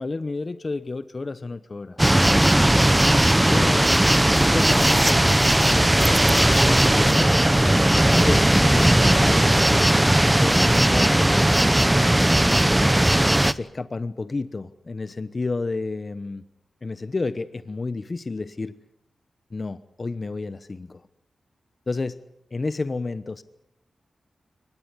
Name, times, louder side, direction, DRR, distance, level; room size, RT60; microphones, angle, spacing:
voice 1, 0.0-2.1 3.5-4.0 4.3-9.9 10.2-11.5 12.9-16.4 16.8-18.8 19.5-21.0 21.9-22.2 22.5-23.4, left 3 dB, 40° left, 13 dB, 1.0 m, -31 dB
sound 1, 2.0-13.5, right 1 dB, 10° right, 0.8 m, -18 dB
23.5 x 20.0 x 8.4 m, 0.81 s
cardioid pair, 70°, 0 cm